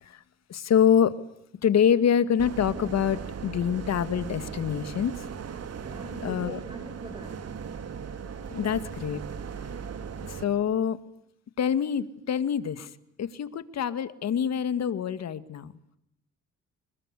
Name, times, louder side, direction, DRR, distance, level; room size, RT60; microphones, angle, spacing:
voice 1, 0.5-1.1 1.6-5.1 6.2-6.6 8.5-9.2 10.3-11.0 11.6-12.9 13.2-15.7, left 8 dB, 60° left, 13 dB, 2.0 m, -25 dB
sound 1, 2.4-10.4, right 6 dB, 55° right, 2.8 m, -38 dB
voice 2, 5.8-7.4, right 1 dB, 15° right, 5 dB, 6.7 m, -42 dB
27.0 x 21.5 x 8.4 m, 0.77 s
cardioid pair, 90°, 30 cm